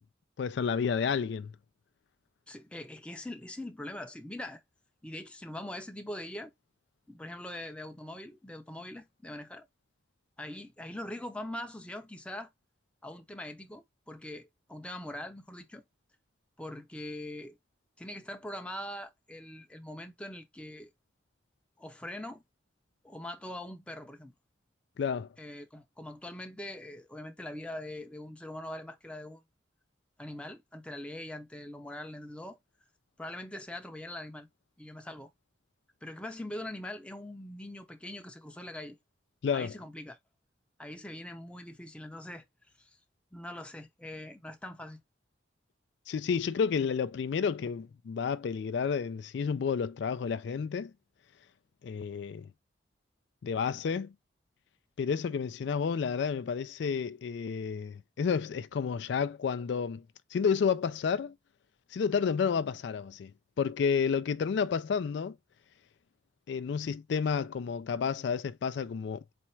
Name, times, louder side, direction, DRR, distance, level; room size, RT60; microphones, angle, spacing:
voice 1, 0.4-1.5 25.0-25.3 39.4-39.7 46.1-50.9 51.8-52.5 53.4-54.1 55.0-60.0 60.3-61.3 61.9-63.3 63.6-65.3 66.5-69.2, left 6 dB, 65° left, 0.3 m, -30 dB
voice 2, 2.5-4.6 5.0-6.5 7.1-9.7 10.4-12.5 13.0-15.8 16.6-17.6 18.0-20.9 21.8-22.4 23.0-24.3 25.4-29.4 30.2-32.6 33.2-34.5 34.8-35.3 36.0-39.0 39.5-40.2 40.8-42.4 42.8-43.0 43.3-45.0, left 1 dB, 5° left, 0.5 m, -42 dB
4.3 x 2.3 x 4.4 m
head